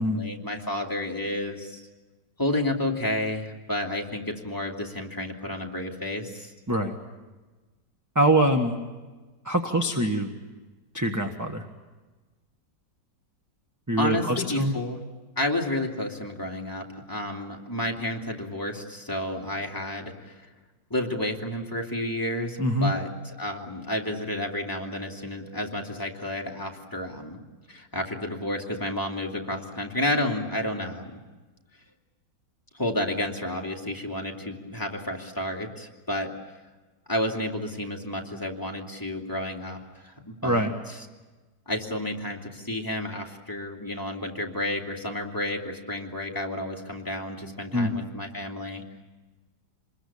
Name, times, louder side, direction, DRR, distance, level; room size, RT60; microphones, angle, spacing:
voice 1, 0.0-1.8 2.4-6.5 14.0-15.0 15.4-20.5 20.9-23.1 23.4-27.4 27.7-31.2 32.7-36.3 37.1-40.7 41.7-48.8, left 1 dB, 10° left, -1 dB, 2.5 m, -31 dB
voice 2, 8.1-8.7 9.4-10.3 10.9-11.6 13.9-14.8 22.6-23.0 40.4-40.7 47.7-47.9, right 1 dB, 10° right, 4 dB, 1.1 m, -24 dB
26.5 x 21.5 x 8.6 m, 1.3 s
omnidirectional pair, 1.9 m